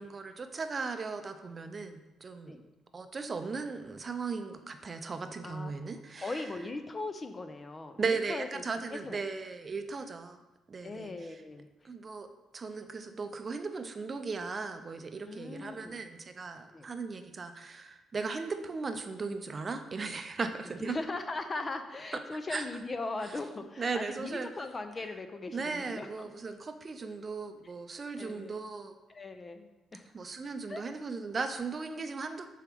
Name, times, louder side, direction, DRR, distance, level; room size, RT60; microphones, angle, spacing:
voice 1, 0.0-2.6 2.9-6.4 8.0-10.4 10.7-11.1 11.8-12.3 12.5-21.0 22.5-22.7 23.8-24.5 25.5-29.0 30.1-32.5, right 4 dB, 35° right, 8 dB, 0.6 m, -37 dB
voice 2, 6.2-8.6 8.9-9.2 10.8-11.7 15.2-16.0 16.7-16.9 20.8-26.3 28.2-28.6 29.1-30.1 30.7-30.8, left 3 dB, 30° left, 8 dB, 0.6 m, -39 dB
7.2 x 4.6 x 3.5 m, 1.0 s
cardioid pair, 90°, 0 cm